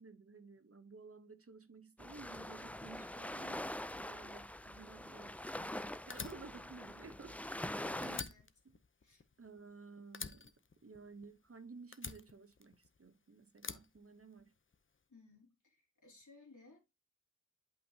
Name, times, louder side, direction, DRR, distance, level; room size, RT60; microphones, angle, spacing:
voice 1, 0.0-8.3 8.6-8.8 9.4-10.5 10.8-14.5, right 4 dB, 45° right, 0.8 m, -55 dB
sound 1, 2.0-8.2, left 1 dB, 5° left, 0.4 m, -44 dB
Fire, 6.1-7.7 8.0-9.8 10.1-11.5 11.9-13.1 13.6-14.8, left 4 dB, 40° left, 0.7 m, -47 dB
voice 2, 7.8-8.5 9.0-9.2 15.1-16.8, left 2 dB, 65° left, 3.3 m, -60 dB
8.5 x 5.2 x 2.8 m
wide cardioid pair, 60°, 32 cm